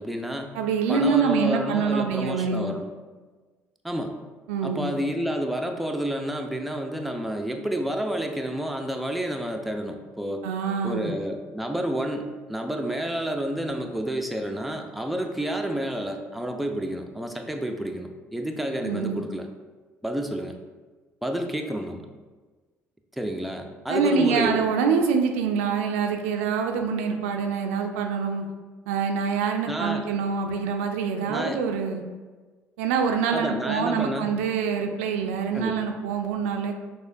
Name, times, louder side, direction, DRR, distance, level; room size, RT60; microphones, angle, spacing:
voice 1, 0.0-0.6 0.9-2.9 3.8-4.1 4.6-10.4 10.8-19.5 20.0-20.6 21.2-22.1 23.1-24.6 29.7-30.1 31.3-31.6 33.3-34.3 35.5-35.9, right 1 dB, ahead, 4 dB, 0.4 m, -30 dB
voice 2, 0.5-2.8 4.5-4.9 10.4-11.1 18.8-19.2 23.9-28.5 28.9-32.0 32.8-36.7, right 5 dB, 70° right, 4 dB, 0.4 m, -25 dB
6.2 x 2.4 x 2.6 m, 1.4 s
figure-of-eight pair, 50°, 7 cm